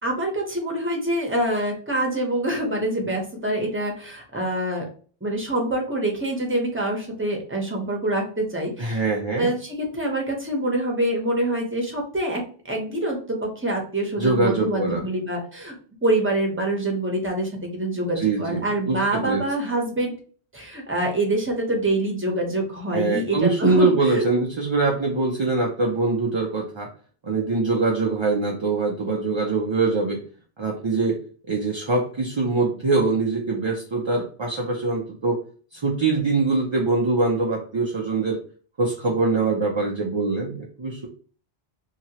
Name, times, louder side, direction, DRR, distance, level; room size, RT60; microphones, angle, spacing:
voice 1, 0.0-4.9 5.2-9.1 9.4-15.7 16.0-20.1 20.5-24.3, right 1 dB, 15° right, 0 dB, 0.8 m, -25 dB
voice 2, 8.8-9.5 14.2-15.0 18.2-19.4 22.9-26.9 27.2-30.2 30.6-31.2 31.5-35.4 35.7-38.4 38.8-41.1, right 3 dB, 40° right, -1 dB, 0.4 m, -23 dB
2.9 x 2.8 x 2.8 m, 0.41 s
omnidirectional pair, 1.1 m